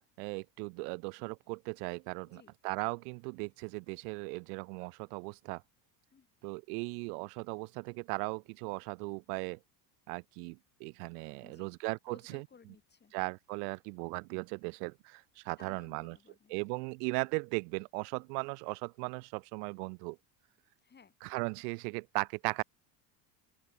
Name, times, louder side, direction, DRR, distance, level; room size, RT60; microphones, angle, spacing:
voice 1, 0.2-5.6 6.4-9.6 10.1-12.5 13.1-16.2 16.5-20.2 21.2-22.6, right 34 dB, 85° right, 0.9 m, -37 dB
voice 2, 2.2-2.5 6.1-6.3 11.4-11.8 12.1-13.1 15.6-16.6 20.8-21.1, left 6 dB, 20° left, 4.7 m, -59 dB
open air
cardioid pair, 130°, 46 cm